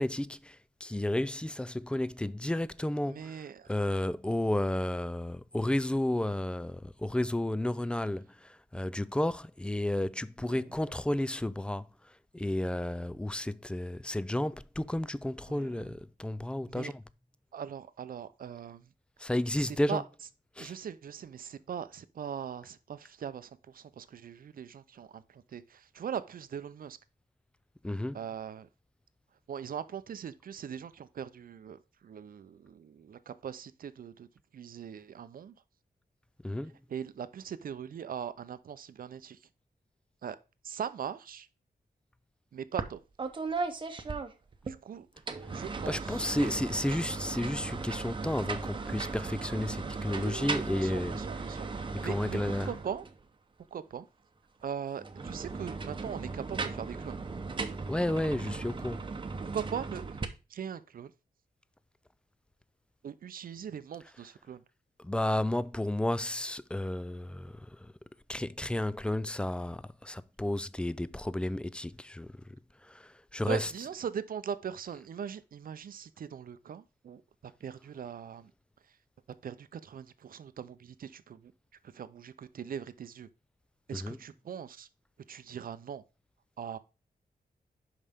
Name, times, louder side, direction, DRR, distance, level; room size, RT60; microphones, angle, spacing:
voice 1, 0.0-3.3 3.7-17.0 19.2-20.0 20.6-20.7 27.8-28.2 36.4-36.8 45.9-51.1 51.9-52.7 57.9-59.0 65.0-67.9 68.3-72.4 72.8-73.7 83.9-84.2, left 1 dB, 5° left, 0.3 m, -32 dB
voice 2, 3.1-3.7 10.4-10.7 15.5-16.0 16.7-16.9 17.5-18.9 19.6-20.0 20.6-27.0 28.1-28.7 29.5-34.3 34.5-35.5 36.9-39.4 40.2-40.4 40.6-41.5 42.5-43.0 44.6-45.1 45.5-46.5 50.1-53.1 53.7-54.1 54.6-57.2 59.4-60.2 60.5-61.1 63.0-64.6 73.4-78.5 79.4-81.5 81.8-83.3 83.9-84.9 85.3-86.0 86.6-86.8, right 8 dB, 65° right, 0.6 m, -40 dB
sound 1, 42.8-42.9 43.2-44.8 45.2-53.2 55.0-60.2, right 4 dB, 30° right, 0.8 m, -37 dB
11.0 x 4.9 x 3.5 m
wide cardioid pair, 130°, 16 cm